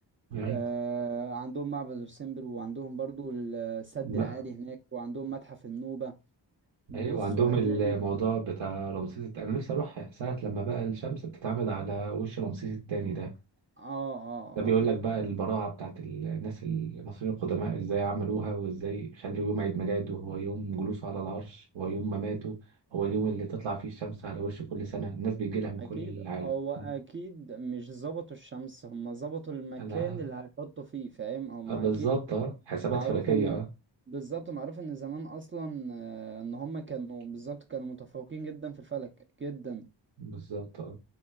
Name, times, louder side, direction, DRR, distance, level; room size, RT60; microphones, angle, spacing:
voice 1, 0.5-6.1 6.9-8.0 13.8-14.7 25.8-32.2 32.9-33.6 34.1-39.1 39.4-39.8, right 5 dB, 30° right, 0.4 m, -37 dB
voice 2, 4.0-4.4 6.9-13.3 14.6-22.6 22.9-26.5 29.8-30.2 31.7-33.6 40.2-40.9, right 5 dB, 85° right, 0.7 m, -31 dB
3.7 x 2.2 x 2.2 m
cardioid pair, 60°, 45 cm